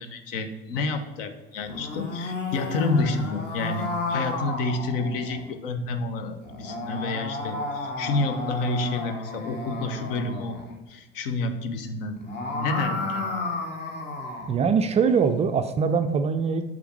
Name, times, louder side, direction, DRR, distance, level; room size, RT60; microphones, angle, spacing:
voice 1, 0.0-10.6 10.9-12.2 12.5-13.4, left 3 dB, 60° left, 9 dB, 0.8 m, -29 dB
sound 1, 1.6-5.5 6.4-10.7 12.1-14.6, left 2 dB, 35° left, 1.3 m, -32 dB
voice 2, 14.5-16.7, right 6 dB, 20° right, 8 dB, 0.3 m, -22 dB
6.9 x 5.1 x 4.5 m, 1.2 s
figure-of-eight pair, 70°, 31 cm